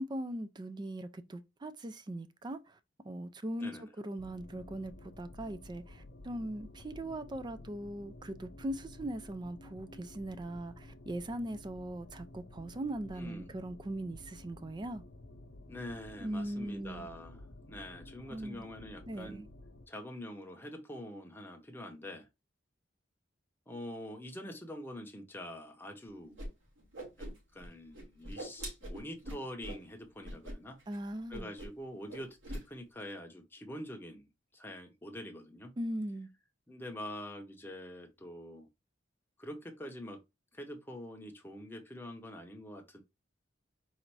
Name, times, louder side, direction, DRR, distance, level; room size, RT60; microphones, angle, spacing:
voice 1, 0.0-2.7 3.0-15.0 16.2-17.1 18.3-18.7 19.1-19.4 30.9-31.5 35.8-36.3, right 1 dB, 20° right, 0.4 m, -40 dB
sound 1, 4.2-19.9, left 2 dB, 55° left, 0.7 m, -52 dB
voice 2, 13.2-13.6 15.7-19.5 19.9-22.3 23.7-26.4 27.2-27.3 27.5-30.8 31.3-35.7 36.7-38.7 39.4-40.2 40.5-43.0, left 1 dB, 10° left, 0.7 m, -45 dB
Whoosh swoosh swish, 26.4-26.5 26.8-27.7 27.9-29.8 30.2-30.5 30.8-31.0 31.3-31.8 32.1-32.6, right 1 dB, 80° right, 2.5 m, -42 dB
4.1 x 2.5 x 4.5 m
head